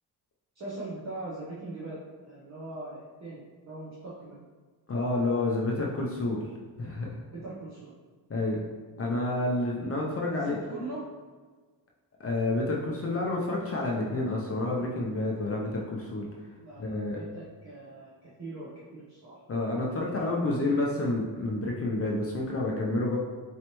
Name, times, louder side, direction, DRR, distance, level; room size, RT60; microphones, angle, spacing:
voice 1, 0.5-4.4 7.3-7.9 10.3-11.1 16.6-19.4 19.9-20.3, right 2 dB, 40° right, -8 dB, 1.0 m, -41 dB
voice 2, 4.9-6.4 6.8-7.2 8.3-8.6 9.0-10.6 12.2-16.3 16.8-17.2 19.5-23.2, left 2 dB, 35° left, -2 dB, 0.6 m, -29 dB
4.2 x 3.2 x 3.0 m, 1.4 s
cardioid pair, 100°, 42 cm